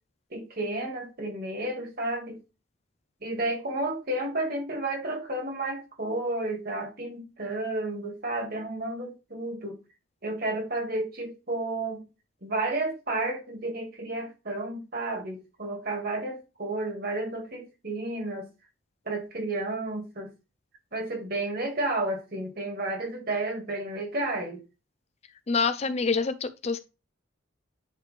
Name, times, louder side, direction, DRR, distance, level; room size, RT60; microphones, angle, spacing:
voice 1, 0.3-2.4 3.2-9.8 10.2-12.0 12.4-18.5 19.1-20.3 20.9-24.6, right 2 dB, 50° right, 2.0 m, -32 dB
voice 2, 25.5-26.8, left 4 dB, 30° left, 0.4 m, -26 dB
10.0 x 3.4 x 3.3 m
head